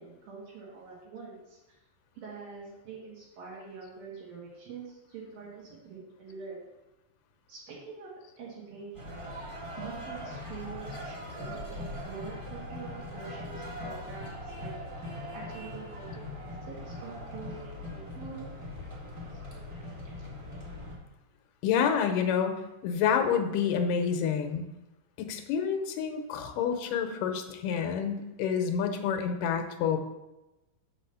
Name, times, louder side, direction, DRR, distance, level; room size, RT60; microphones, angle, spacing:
voice 1, 0.0-1.8 2.2-6.6 7.5-8.1 8.4-9.3 9.8-14.7 15.3-18.5 19.3-19.4, right 5 dB, 80° right, -6 dB, 3.5 m, -45 dB
sound 1, 8.9-21.0, left 1 dB, 20° right, 0.7 m, -40 dB
voice 2, 21.6-24.6 25.2-30.0, left 7 dB, 75° left, 5 dB, 2.4 m, -28 dB
6.1 x 5.2 x 6.9 m, 0.99 s
omnidirectional pair, 4.1 m